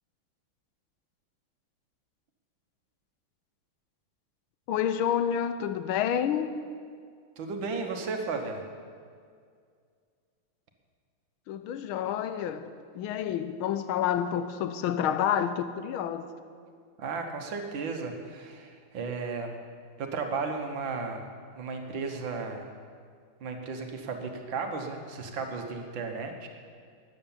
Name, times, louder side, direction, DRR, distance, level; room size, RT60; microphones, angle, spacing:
voice 1, 4.7-6.5 11.5-16.3, left 9 dB, 85° left, 11 dB, 1.5 m, -29 dB
voice 2, 7.4-8.6 17.0-19.5 20.0-21.3 21.6-22.7 23.4-26.5, right 4 dB, 70° right, 4 dB, 1.9 m, -34 dB
13.0 x 9.4 x 7.2 m, 2.2 s
omnidirectional pair, 2.2 m